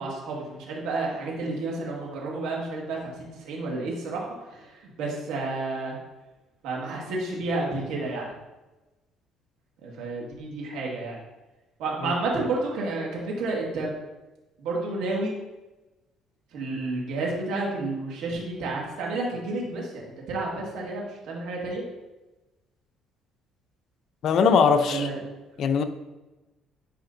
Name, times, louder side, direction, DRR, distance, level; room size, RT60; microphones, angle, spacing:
voice 1, 0.0-4.3 4.5-4.7 5.0-6.0 6.6-8.3 9.8-11.2 11.8-13.9 14.6-15.4 16.5-21.8 24.9-25.2 25.7-25.8, right 2 dB, 80° right, -2 dB, 1.9 m, -30 dB
voice 2, 24.2-25.1 25.6-25.8, left 5 dB, 60° left, 8 dB, 0.6 m, -20 dB
10.0 x 5.1 x 2.7 m, 1.1 s
cardioid pair, 110°, 0 cm